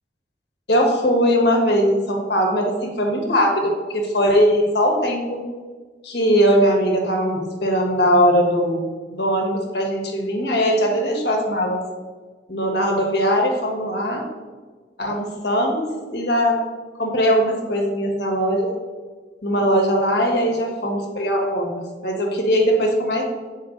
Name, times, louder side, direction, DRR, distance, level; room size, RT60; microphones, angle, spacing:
voice 1, 0.7-5.4 6.0-8.9 9.1-11.8 12.5-14.2 15.0-16.6 17.0-18.7 19.4-23.2, equal, 70° left, 0 dB, 1.6 m, -20 dB
7.8 x 5.2 x 3.9 m, 1.4 s
head